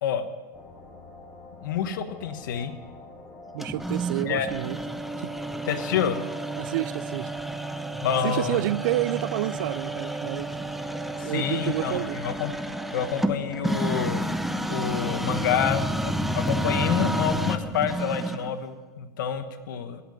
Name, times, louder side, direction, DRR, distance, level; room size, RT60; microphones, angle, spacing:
sound 1, 0.5-15.5, left 2 dB, 15° left, 2.4 m, -46 dB
voice 1, 1.6-2.7 4.2-4.5 5.7-6.2 8.0-8.6 11.2-12.5 12.9-14.3 14.7-20.0, left 8 dB, 80° left, 1.2 m, -28 dB
voice 2, 3.5-4.8 5.2-5.3 6.6-7.3 8.1-10.5 11.2-12.2, right 16 dB, 70° right, 0.4 m, -29 dB
sound 2, 3.6-18.6, right 1 dB, ahead, 0.5 m, -30 dB
17.0 x 5.9 x 9.0 m
supercardioid pair, 140°, 10 cm